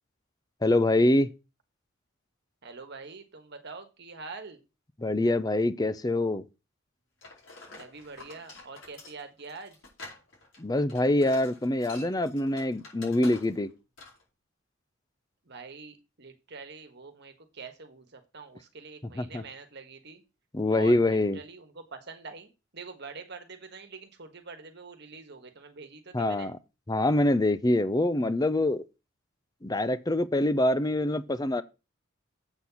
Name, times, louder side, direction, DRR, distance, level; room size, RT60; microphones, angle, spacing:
voice 1, 0.6-1.3 5.0-6.4 10.6-13.7 19.2-19.4 20.5-21.4 26.1-26.6 26.9-28.8 29.6-31.6, left 1 dB, 20° left, 0.6 m, -25 dB
voice 2, 2.6-4.6 7.7-9.8 15.4-20.2 20.7-26.5, right 4 dB, 55° right, 1.5 m, -45 dB
sound 1, 7.2-13.7 14.0-14.2, left 3 dB, 70° left, 5.1 m, -48 dB
7.9 x 4.3 x 7.1 m
head